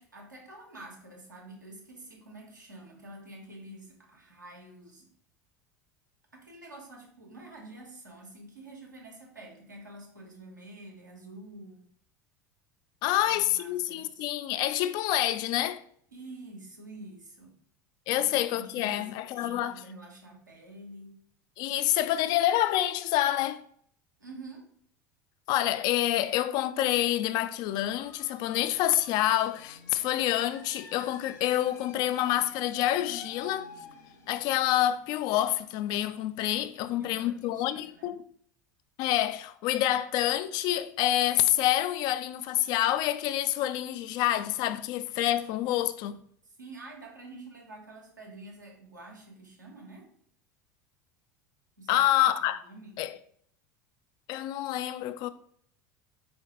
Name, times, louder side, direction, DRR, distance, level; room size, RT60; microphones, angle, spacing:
voice 1, 0.0-5.1 6.3-11.8 13.1-14.3 16.1-17.6 18.1-21.2 24.2-24.7 36.8-38.2 46.6-50.1 51.8-52.2 52.7-53.0, right 2 dB, 85° right, 1.1 m, -48 dB
voice 2, 13.0-15.8 18.1-19.8 21.6-23.6 25.5-33.7 34.3-38.2 39.0-46.2 51.9-52.6 53.0-53.2 54.3-55.3, left 13 dB, 45° left, 0.3 m, -27 dB
sound 1, 27.7-37.1, left 3 dB, 70° left, 0.8 m, -51 dB
4.7 x 3.1 x 3.0 m
figure-of-eight pair, 70°, 10 cm